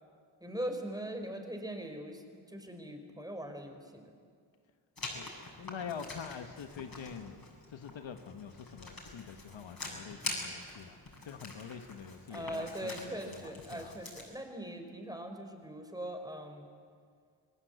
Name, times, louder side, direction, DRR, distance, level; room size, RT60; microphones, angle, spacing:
voice 1, 0.4-2.2 2.5-4.1 12.3-16.7, right 1 dB, 10° right, 5 dB, 4.4 m, -41 dB
Writing, 5.0-14.3, left 2 dB, 50° left, 7.1 m, -45 dB
voice 2, 5.6-7.4 7.7-11.0 11.2-14.0, left 7 dB, 80° left, 7 dB, 1.4 m, -45 dB
28.0 x 19.0 x 8.1 m, 2.1 s
cardioid pair, 55°, 45 cm